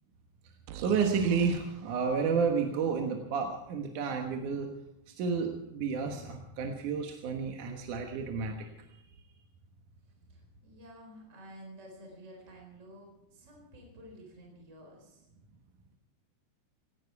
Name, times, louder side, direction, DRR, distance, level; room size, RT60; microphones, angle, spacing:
voice 1, 0.7-4.7 5.1-8.7, right 5 dB, 65° right, 3 dB, 2.6 m, -31 dB
sound 1, 0.7-4.4, right 9 dB, 85° right, 2.8 m, -48 dB
voice 2, 10.3-15.2, equal, 20° right, 0 dB, 4.4 m, -51 dB
18.0 x 17.0 x 4.7 m, 0.85 s
omnidirectional pair, 4.2 m